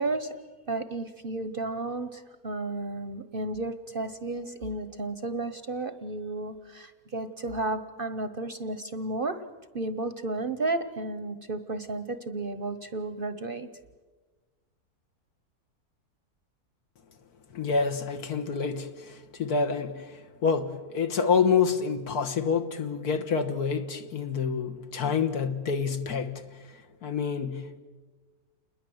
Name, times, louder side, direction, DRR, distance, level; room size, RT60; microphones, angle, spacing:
voice 1, 0.0-9.4 9.7-13.7, right 2 dB, 40° right, 0.9 m, -33 dB
voice 2, 17.5-27.8, left 5 dB, 75° left, 1.9 m, -28 dB
28.5 x 21.5 x 7.8 m
omnidirectional pair, 1.7 m